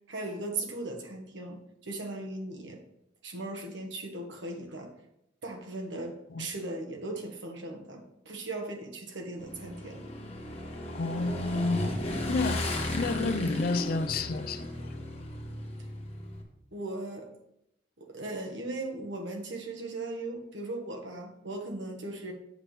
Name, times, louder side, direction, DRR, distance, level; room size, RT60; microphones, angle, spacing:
voice 1, 0.1-2.8 3.2-4.9 5.4-10.0 16.7-17.3 18.0-22.3, right 2 dB, 65° right, 1.4 m, -38 dB
Motorcycle / Engine, 9.4-16.4, left 1 dB, 35° left, 1.3 m, -35 dB
voice 2, 10.9-11.9 12.3-12.7 12.9-14.9, left 3 dB, 50° left, 0.5 m, -30 dB
8.0 x 7.5 x 3.3 m
head